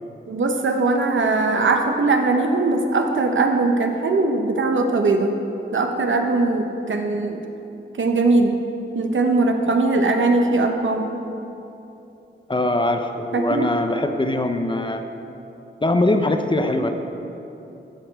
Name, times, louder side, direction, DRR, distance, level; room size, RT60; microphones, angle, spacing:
voice 1, 0.3-5.4 5.7-7.5 8.0-8.6 8.9-11.1 13.3-13.7, right 3 dB, 70° right, 4 dB, 0.9 m, -20 dB
voice 2, 12.5-15.0 15.8-16.9, left 2 dB, 25° left, 6 dB, 0.6 m, -22 dB
15.0 x 5.3 x 4.6 m, 2.9 s
wide cardioid pair, 90°, 21 cm